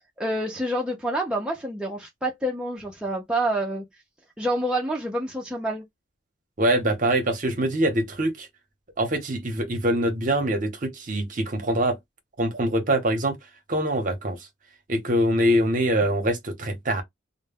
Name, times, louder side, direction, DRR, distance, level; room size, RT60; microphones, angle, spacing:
voice 1, 0.2-3.8 4.4-5.8, right 1 dB, 5° right, 0.4 m, -27 dB
voice 2, 6.6-8.5 9.0-12.0 12.4-13.3 13.7-14.4 14.9-17.0, right 1 dB, 40° right, 0.7 m, -24 dB
2.1 x 2.0 x 3.3 m
head